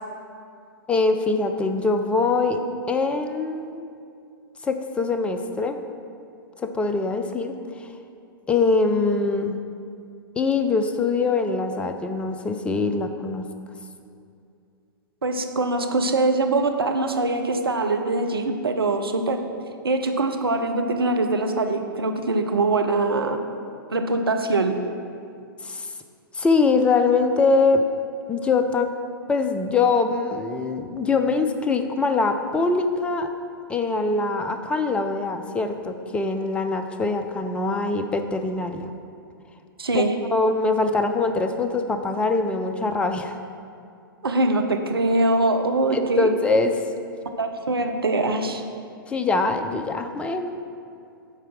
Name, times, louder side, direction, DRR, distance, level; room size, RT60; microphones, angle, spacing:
voice 1, 0.9-2.6 2.9-3.8 4.6-5.8 6.6-7.5 7.8-7.9 8.5-9.6 10.4-13.5 25.6-25.9 26.3-27.8 28.3-28.9 29.3-33.3 33.7-38.9 39.9-40.0 40.3-43.4 45.9-46.8 49.1-50.5, left 3 dB, 10° left, 7 dB, 0.5 m, -23 dB
voice 2, 15.2-19.4 19.8-23.4 23.9-24.8 39.8-40.2 44.2-46.3 47.4-48.6, right 2 dB, 85° right, 5 dB, 0.7 m, -23 dB
8.8 x 4.6 x 6.1 m, 2.5 s
figure-of-eight pair, 110°, 12 cm